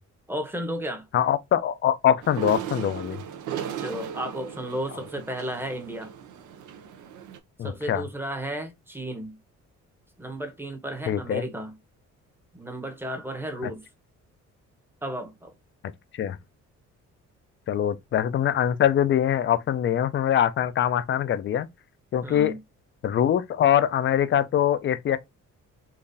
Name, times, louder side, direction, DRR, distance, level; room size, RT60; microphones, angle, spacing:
voice 1, 0.3-1.0 3.8-6.1 7.6-9.4 10.2-11.7 12.5-13.9 15.0-15.5 22.2-22.6, equal, 5° right, 0.8 m, -33 dB
voice 2, 1.1-3.2 7.6-8.0 11.1-11.4 13.6-13.7 16.1-16.4 17.7-21.7 22.1-22.5 23.0-25.2, left 10 dB, 40° left, 0.4 m, -23 dB
sound 1, 2.2-7.4, right 9 dB, 80° right, 0.6 m, -36 dB
3.9 x 2.4 x 2.6 m
cardioid pair, 90°, 30 cm